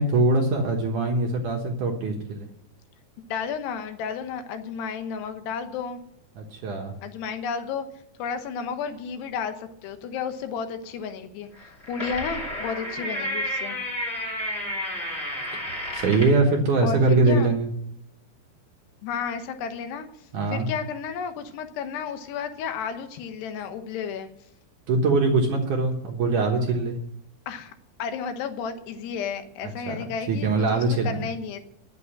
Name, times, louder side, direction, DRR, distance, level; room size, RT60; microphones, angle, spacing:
voice 1, 0.0-2.5 6.4-6.9 15.7-17.7 20.3-20.7 24.9-27.0 29.9-30.0 30.3-31.2, right 3 dB, 65° right, 1 dB, 2.1 m, -22 dB
voice 2, 3.2-6.0 7.0-7.9 8.2-13.8 16.8-17.5 19.0-24.3 27.5-27.7 28.0-31.6, left 6 dB, 75° left, 8 dB, 3.2 m, -32 dB
sound 1, 11.6-16.4, equal, 20° left, 2.3 m, -31 dB
10.5 x 8.3 x 9.7 m, 0.77 s
omnidirectional pair, 5.1 m